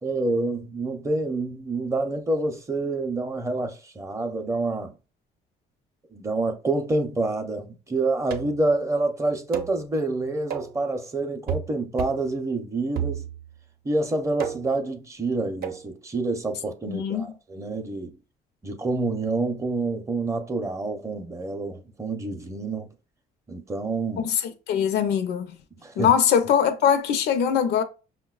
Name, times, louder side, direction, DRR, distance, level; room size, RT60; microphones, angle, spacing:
voice 1, 0.0-4.9 6.1-13.3 13.8-18.2 18.6-22.9 23.5-24.3 25.8-26.1, right 2 dB, 20° right, 0.5 m, -27 dB
sound 1, 8.3-8.7 9.5-9.8 10.5-10.8 11.5-11.7 12.0-12.3 13.0-13.5 14.4-14.8 15.6-15.9, right 9 dB, 65° right, 0.6 m, -32 dB
voice 2, 16.8-17.2 24.2-25.6 26.0-27.8, left 8 dB, 75° left, 0.5 m, -22 dB
5.3 x 2.1 x 2.3 m
cardioid pair, 110°, 17 cm